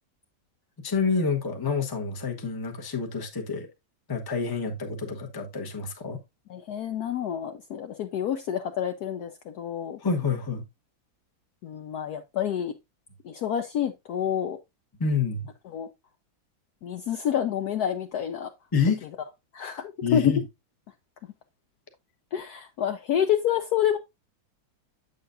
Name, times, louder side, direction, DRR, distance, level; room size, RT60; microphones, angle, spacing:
voice 1, 0.8-3.7 4.1-6.2 10.0-10.6 15.0-15.5 18.7-19.0 20.0-20.4, left 5 dB, 20° left, 0.7 m, -27 dB
voice 2, 6.5-10.0 11.6-12.7 13.2-14.6 15.7-15.9 16.8-18.5 19.5-20.3 22.3-24.0, left 9 dB, 70° left, 1.0 m, -28 dB
8.1 x 6.8 x 2.5 m
omnidirectional pair, 2.1 m